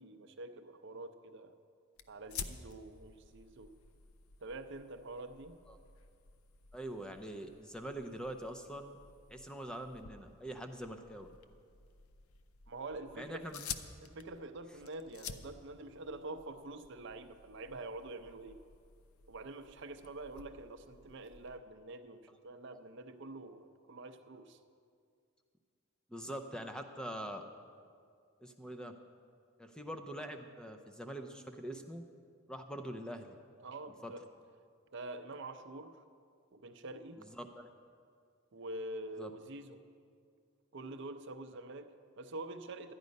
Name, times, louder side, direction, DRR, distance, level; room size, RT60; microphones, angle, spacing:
voice 1, 0.0-1.5 2.1-3.7 4.4-5.5 12.7-13.5 14.0-18.6 19.3-24.6 33.6-34.2 34.9-35.9 36.5-37.2 38.5-39.8 40.7-42.9, right 2 dB, 60° right, 8 dB, 0.6 m, -46 dB
sound 1, 2.0-21.6, left 6 dB, 90° left, 0.5 m, -51 dB
voice 2, 6.7-9.0 9.3-11.3 13.2-13.7 26.1-27.4 28.4-29.0 29.6-32.0 32.5-33.4 34.0-34.1 37.3-37.7 39.2-39.3, right 1 dB, 5° left, 6 dB, 0.6 m, -44 dB
12.5 x 9.5 x 5.3 m, 2.2 s
head